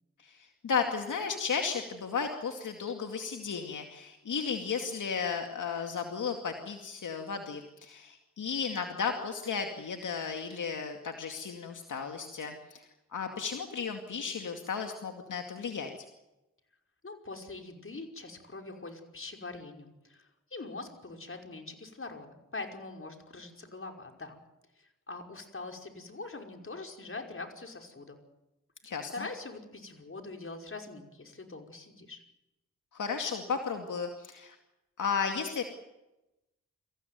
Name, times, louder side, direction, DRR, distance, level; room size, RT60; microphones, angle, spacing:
voice 1, 0.2-12.8 13.1-15.9 28.8-29.1 32.9-34.6 35.0-35.6, left 6 dB, 75° left, 4 dB, 2.4 m, -34 dB
voice 2, 17.0-24.4 24.8-28.2 29.1-32.2, left 3 dB, 45° left, 3 dB, 5.5 m, -43 dB
26.5 x 15.5 x 9.5 m, 0.96 s
cardioid pair, 50°, 31 cm